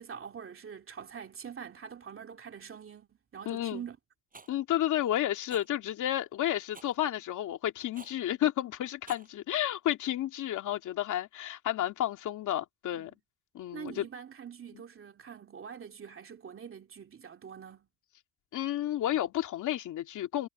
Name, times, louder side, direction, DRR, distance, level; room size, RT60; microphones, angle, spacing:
voice 1, 0.0-4.0 12.9-13.1 13.7-17.9, right 7 dB, 45° right, 2.7 m, -45 dB
voice 2, 3.5-3.8 4.5-13.1 13.5-14.0 18.5-20.5, left 12 dB, 80° left, 2.6 m, -31 dB
Rattle, 4.3-4.5 5.5-5.7 6.7-7.0 7.9-8.2 8.9-9.3, right 4 dB, 30° right, 6.5 m, -49 dB
cardioid pair, 90°, 30 cm